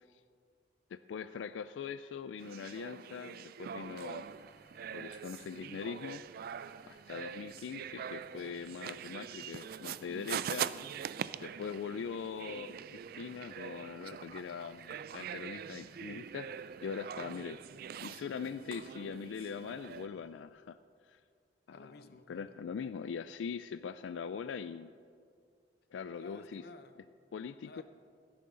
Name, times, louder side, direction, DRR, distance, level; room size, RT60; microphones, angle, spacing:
voice 1, 0.9-4.2 4.9-6.2 6.9-10.7 11.4-16.5 16.8-17.6 18.0-20.8 21.0-21.2 21.7-21.9 22.3-24.9 25.9-26.6 27.3-27.8, left 6 dB, 90° left, 11 dB, 0.3 m, -42 dB
sound 1, 2.4-20.1, right 8 dB, 55° right, 0.3 m, -43 dB
sound 2, 3.7-20.3, equal, 15° right, 2.9 m, -65 dB
voice 2, 21.7-22.6 26.2-27.0 27.6-27.8, left 2 dB, 60° left, 9 dB, 0.7 m, -54 dB
16.5 x 10.5 x 3.8 m, 2.2 s
head